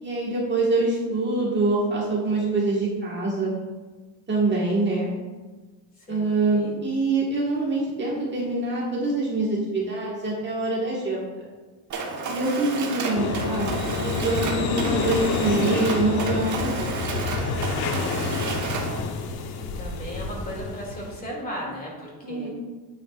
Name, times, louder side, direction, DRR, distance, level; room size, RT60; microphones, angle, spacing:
voice 1, 0.0-3.5 4.3-5.1 6.1-11.5 12.3-13.7 14.0-17.3 22.2-22.5, right 2 dB, 25° right, -5 dB, 1.5 m, -25 dB
voice 2, 6.1-6.7 19.7-22.5, equal, 20° left, -3 dB, 2.5 m, -37 dB
Mechanisms, 11.9-19.0, right 3 dB, 40° right, 1.3 m, -32 dB
sound 1, 13.2-21.2, left 4 dB, 60° left, 1.0 m, -28 dB
8.9 x 8.8 x 2.4 m, 1.3 s
cardioid pair, 140°, 43 cm